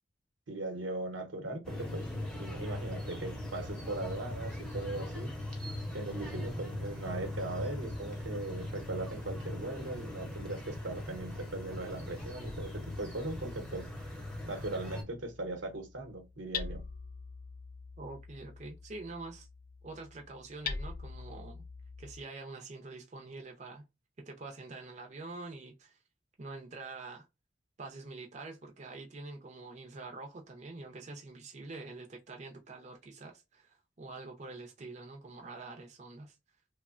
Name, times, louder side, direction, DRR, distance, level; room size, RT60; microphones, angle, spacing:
voice 1, 0.5-2.1 2.4-5.3 5.9-13.9 14.5-16.8, right 2 dB, 85° right, 0.9 m, -39 dB
sound 1, 1.6-15.0, left 1 dB, 5° left, 0.6 m, -40 dB
Hammer, 12.4-22.2, left 5 dB, 50° left, 0.3 m, -45 dB
voice 2, 18.0-19.5 19.8-21.6 22.0-23.8 24.3-26.0 26.4-27.3 27.8-36.4, right 3 dB, 40° right, 0.5 m, -46 dB
3.1 x 2.1 x 2.4 m
head